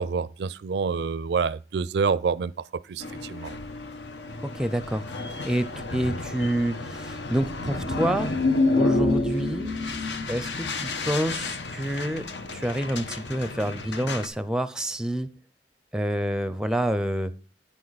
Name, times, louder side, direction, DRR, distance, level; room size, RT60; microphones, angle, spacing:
voice 1, 0.0-2.5 2.9-3.6, right 5 dB, 70° right, 0.4 m, -27 dB
sound 1, 3.0-14.3, left 2 dB, 80° left, 1.1 m, -29 dB
voice 2, 4.5-5.0 5.4-5.7 5.9-8.3 8.8-9.7 10.3-12.2 12.5-15.3 15.9-17.3, right 1 dB, 5° right, 0.5 m, -27 dB
sound 2, 8.9-12.8, equal, 50° left, 4.7 m, -44 dB
9.7 x 9.0 x 4.1 m
head